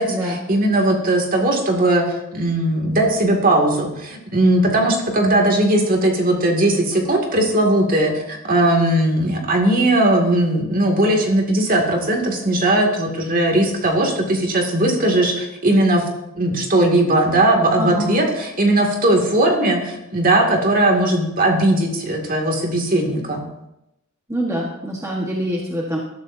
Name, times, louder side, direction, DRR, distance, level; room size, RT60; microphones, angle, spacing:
voice 1, 0.0-16.0 16.3-23.4, right 1 dB, 40° right, 1 dB, 2.3 m, -18 dB
voice 2, 17.8-18.1 24.3-26.0, equal, 15° right, -2 dB, 1.4 m, -25 dB
20.5 x 12.5 x 2.7 m, 0.87 s
head